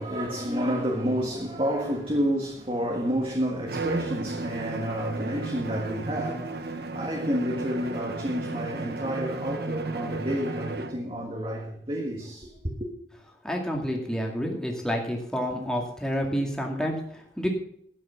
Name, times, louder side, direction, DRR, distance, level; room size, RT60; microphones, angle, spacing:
voice 1, 0.0-12.9, equal, 30° right, 1.7 m, -30 dB
Bowed string instrument, 3.7-11.1, right 3 dB, 60° right, 1.0 m, -34 dB
voice 2, 13.4-17.5, equal, 5° left, 2.1 m, -29 dB
12.5 x 8.4 x 6.1 m
head